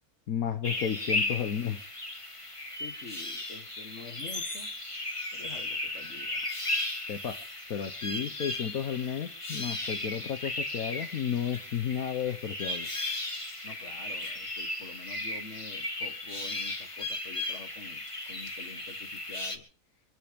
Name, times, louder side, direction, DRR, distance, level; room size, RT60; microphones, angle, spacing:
voice 1, 0.3-1.9 7.1-7.4 7.7-12.9, left 8 dB, 75° left, 1.5 m, -32 dB
sound 1, 0.6-19.6, left 2 dB, 20° left, 1.9 m, -36 dB
voice 2, 2.7-4.7 5.0-6.4 13.6-19.7, left 5 dB, 55° left, 1.8 m, -47 dB
25.5 x 10.5 x 5.2 m
omnidirectional pair, 1.5 m